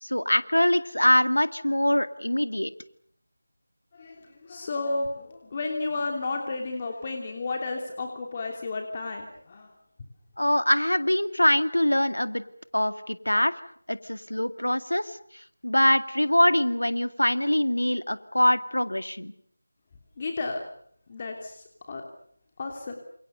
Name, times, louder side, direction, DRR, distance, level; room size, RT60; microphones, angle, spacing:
voice 1, 0.0-2.7 10.4-12.4 12.7-13.5 13.9-15.2 15.6-19.3, left 1 dB, 85° left, 11 dB, 2.1 m, -23 dB
voice 2, 3.9-9.7 20.2-20.6 21.1-22.0 22.6-22.9, left 3 dB, 30° left, 3 dB, 3.0 m, -32 dB
29.0 x 28.0 x 6.7 m, 0.65 s
figure-of-eight pair, 165°, 0 cm